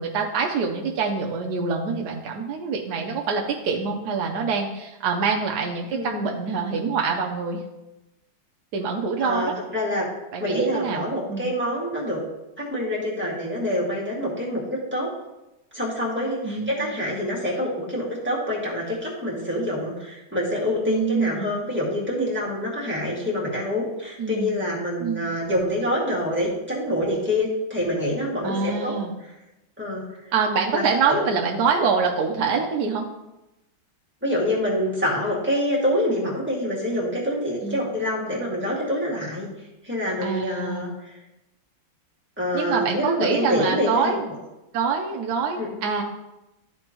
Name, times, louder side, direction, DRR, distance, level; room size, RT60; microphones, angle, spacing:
voice 1, 0.0-7.6 8.7-9.6 10.3-11.5 16.4-16.8 20.9-21.5 24.2-24.5 25.0-25.3 28.4-29.1 30.3-33.1 37.6-37.8 40.2-40.9 42.5-44.2 44.7-46.0, right 5 dB, 65° right, 0 dB, 1.1 m, -25 dB
voice 2, 5.9-6.3 9.2-10.1 10.4-12.2 12.6-15.1 15.7-29.0 29.8-30.0 30.7-31.2 34.2-39.5 39.8-40.9 42.4-44.1 45.6-45.7, left 1 dB, 5° right, -5 dB, 1.7 m, -26 dB
12.5 x 4.3 x 3.0 m, 0.95 s
omnidirectional pair, 2.3 m